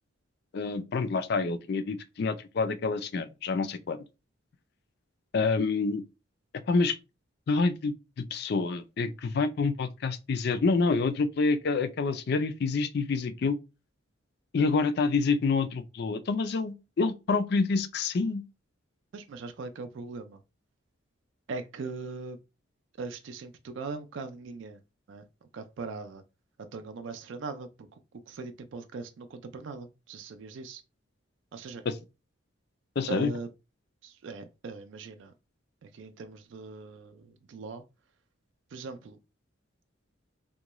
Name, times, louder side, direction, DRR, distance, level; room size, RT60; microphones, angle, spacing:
voice 1, 0.5-4.0 5.3-6.0 6.7-7.0 7.5-13.6 14.5-18.4 31.9-32.0 33.0-33.3, left 4 dB, 50° left, 0.4 m, -27 dB
voice 2, 19.1-20.4 21.5-22.4 23.0-24.8 25.1-25.2 25.5-26.2 26.7-27.7 28.3-30.8 31.5-31.8 33.1-33.5 34.0-35.3 35.8-37.8 38.7-39.2, right 4 dB, 65° right, 0.3 m, -40 dB
3.6 x 2.2 x 3.0 m
head